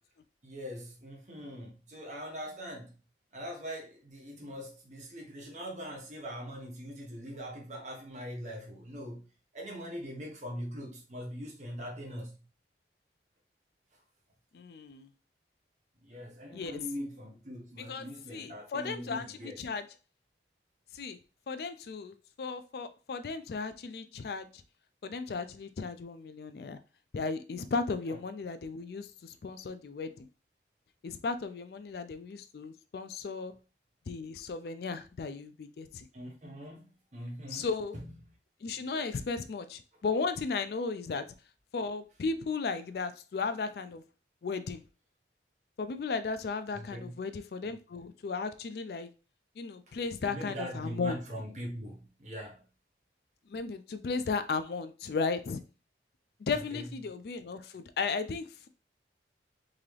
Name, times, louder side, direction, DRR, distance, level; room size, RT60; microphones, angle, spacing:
voice 1, 0.4-3.0 3.3-9.2 9.5-12.4 16.0-19.6 28.1-28.2 36.1-37.7 37.9-38.1 46.7-47.2 50.3-52.6 56.5-56.9, equal, 40° right, 1.0 m, -42 dB
voice 2, 14.5-15.1 16.5-16.8 17.8-19.8 20.9-21.2 21.5-24.5 25.0-26.8 27.1-30.3 31.0-33.5 34.1-36.1 37.5-38.0 38.6-41.2 41.7-44.0 44.4-44.8 45.8-49.1 49.6-51.2 53.5-55.6 56.4-58.7, left 4 dB, 60° left, 0.4 m, -35 dB
3.8 x 2.8 x 3.2 m
head